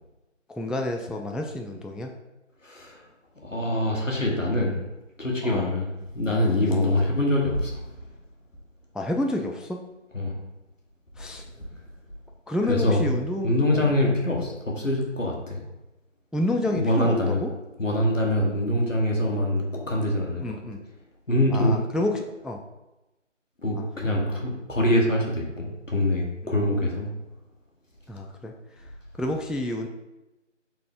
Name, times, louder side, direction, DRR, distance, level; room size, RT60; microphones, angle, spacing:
voice 1, 0.5-2.1 5.4-5.7 6.7-6.9 8.9-9.8 11.2-11.4 12.5-14.1 16.3-17.5 20.4-20.8 21.5-22.6 23.8-23.9 26.4-26.7 28.1-28.5 29.2-29.9, left 1 dB, ahead, 3 dB, 0.3 m, -29 dB
voice 2, 2.6-3.0 3.4-4.8 5.2-7.8 10.1-10.3 12.7-13.1 13.4-15.6 16.6-17.4 17.8-20.4 21.3-21.8 23.6-27.1, left 1 dB, 85° left, -1 dB, 1.5 m, -24 dB
3.8 x 3.6 x 3.6 m, 1.0 s
figure-of-eight pair, 180°, 37 cm